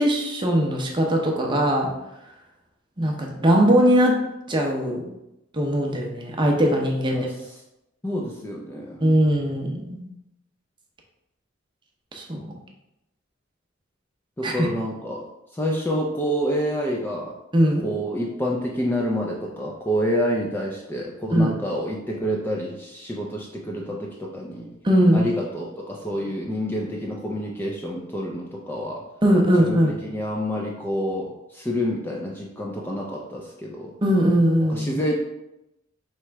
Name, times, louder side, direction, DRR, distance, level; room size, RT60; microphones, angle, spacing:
voice 1, 0.0-1.9 3.0-4.2 4.5-5.1 5.5-7.3 9.0-10.0 12.1-12.5 14.4-14.7 17.5-17.8 21.3-21.5 24.8-25.3 29.2-29.9 34.0-35.0, equal, 25° right, 0 dB, 0.6 m, -20 dB
voice 2, 8.0-9.0 14.4-15.3 15.5-17.4 17.8-24.7 25.1-29.0 29.6-33.9 34.7-35.1, equal, 10° left, -2 dB, 0.3 m, -28 dB
3.3 x 3.0 x 4.5 m, 0.90 s
head